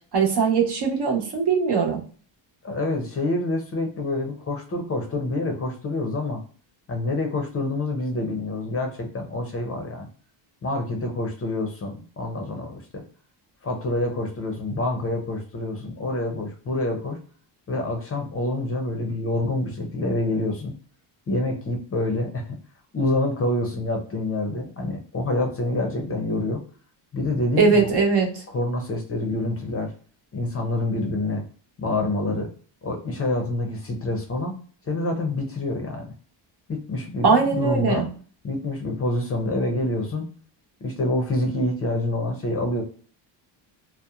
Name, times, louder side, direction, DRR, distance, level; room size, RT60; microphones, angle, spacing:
voice 1, 0.1-2.0 27.6-28.3 37.2-38.1, right 5 dB, 60° right, 0 dB, 0.9 m, -20 dB
voice 2, 2.6-6.4 6.9-10.1 10.6-13.0 13.6-17.2 17.7-20.7 21.3-22.6 22.9-26.6 27.1-27.9 28.5-29.9 30.3-31.4 31.8-32.5 32.8-34.6 34.8-36.1 36.7-38.1 38.4-40.3 40.8-42.8, left 2 dB, 30° left, 3 dB, 0.5 m, -27 dB
2.8 x 2.0 x 2.3 m, 0.43 s
cardioid pair, 125°, 47 cm